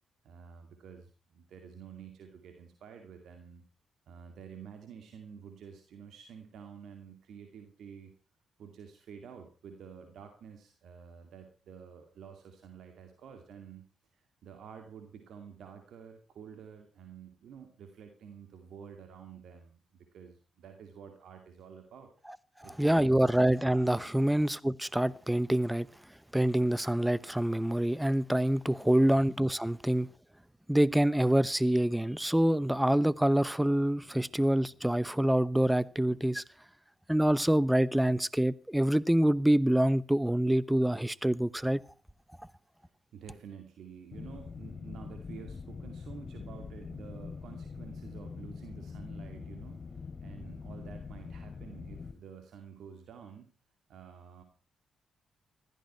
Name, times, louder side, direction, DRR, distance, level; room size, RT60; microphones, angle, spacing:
voice 1, 0.2-3.6 4.1-8.1 8.6-13.8 14.1-19.8 20.1-22.1 22.6-23.4 42.8-53.5 53.9-54.4, right 7 dB, 75° right, 2.4 m, -50 dB
voice 2, 22.8-25.9 26.3-30.1 30.7-36.4 37.1-41.8, right 1 dB, 5° right, 0.9 m, -26 dB
sound 1, 44.1-52.1, left 5 dB, 50° left, 3.8 m, -43 dB
15.5 x 14.0 x 4.4 m
supercardioid pair, 55°, 0 cm